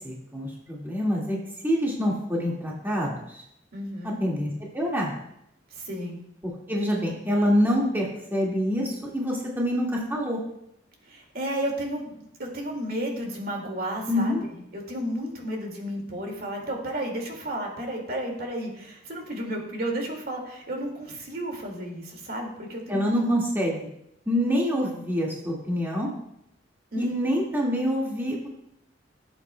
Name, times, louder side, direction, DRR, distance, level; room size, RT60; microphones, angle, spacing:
voice 1, 0.0-1.4 1.6-3.4 4.0-5.1 6.7-10.4 14.1-14.4 22.9-23.9 24.3-26.1 27.0-28.5, equal, 10° right, -4 dB, 1.9 m, -26 dB
voice 2, 3.7-4.2 5.8-6.2 11.1-23.0 26.9-27.1, right 1 dB, 55° right, 1 dB, 2.1 m, -32 dB
16.0 x 8.1 x 2.2 m, 0.78 s
head